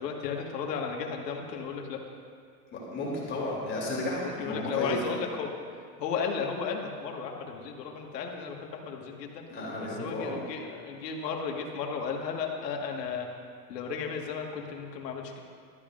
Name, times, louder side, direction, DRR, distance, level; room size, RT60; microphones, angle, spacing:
voice 1, 0.0-2.0 4.2-5.5 6.0-9.5 10.0-13.3 13.7-15.4, left 6 dB, 85° left, 1 dB, 1.9 m, -34 dB
voice 2, 2.7-5.0 9.5-10.3, left 2 dB, 25° left, -5 dB, 3.4 m, -33 dB
19.0 x 13.0 x 2.6 m, 2.2 s
supercardioid pair, 145°, 48 cm